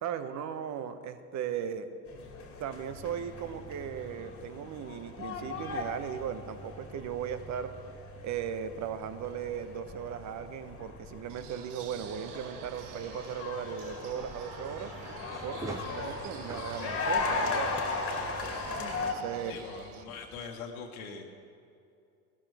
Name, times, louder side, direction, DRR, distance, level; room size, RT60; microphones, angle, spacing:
voice 1, 0.0-1.9 2.6-7.7 8.2-14.9 15.4-17.8 18.8-19.5, right 8 dB, 35° right, 11 dB, 1.0 m, -37 dB
sound 1, 2.1-19.1, left 3 dB, 30° left, 2.1 m, -38 dB
sound 2, 11.3-20.0, right 8 dB, 75° right, 1.0 m, -47 dB
sound 3, 15.3-20.5, right 2 dB, 5° right, 0.6 m, -48 dB
voice 2, 19.4-21.3, left 5 dB, 65° left, 3 dB, 1.6 m, -42 dB
17.5 x 12.5 x 3.5 m, 2.5 s
hypercardioid pair, 80°, 46 cm